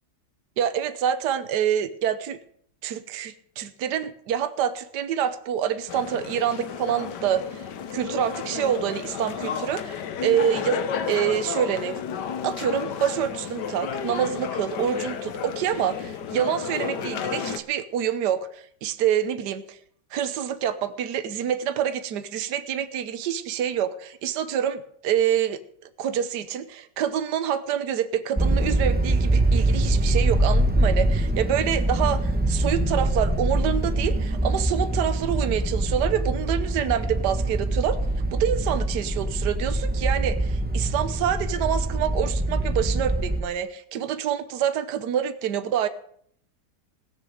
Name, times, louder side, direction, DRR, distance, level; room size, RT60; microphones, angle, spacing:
voice 1, 0.6-2.4 2.8-7.6 7.9-10.8 11.1-12.0 12.4-19.8 20.1-25.6 26.0-38.0 38.3-45.9, right 9 dB, 70° right, 11 dB, 1.5 m, -26 dB
sound 1, 5.9-17.6, left 7 dB, 70° left, 1.5 m, -32 dB
sound 2, 28.4-43.4, right 1 dB, 10° right, 0.4 m, -24 dB
18.5 x 6.8 x 6.4 m, 0.63 s
omnidirectional pair, 2.0 m